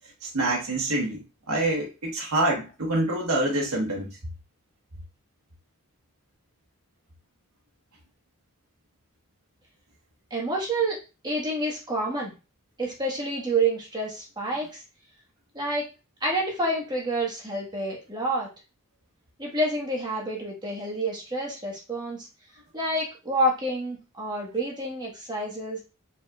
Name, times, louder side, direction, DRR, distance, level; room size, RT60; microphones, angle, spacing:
voice 1, 0.2-4.2, right 2 dB, 85° right, -1 dB, 1.2 m, -26 dB
voice 2, 10.3-12.3 12.8-14.8 15.5-15.9 16.2-18.5 19.4-22.3 22.7-25.8, right 1 dB, 20° right, -2 dB, 1.4 m, -28 dB
4.9 x 4.1 x 2.4 m, 0.30 s
head